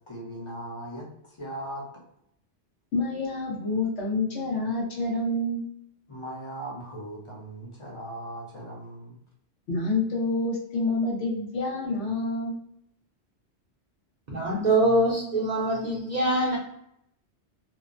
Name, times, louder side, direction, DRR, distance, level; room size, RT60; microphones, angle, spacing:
voice 1, 0.1-1.1 1.4-2.0 6.1-9.2, right 1 dB, 30° left, -4 dB, 0.7 m, -38 dB
voice 2, 2.9-5.7 9.7-12.6, left 2 dB, 70° left, -4 dB, 1.1 m, -28 dB
voice 3, 14.3-16.6, right 1 dB, 45° right, -5 dB, 0.7 m, -24 dB
2.8 x 2.1 x 2.5 m, 0.73 s
omnidirectional pair, 1.2 m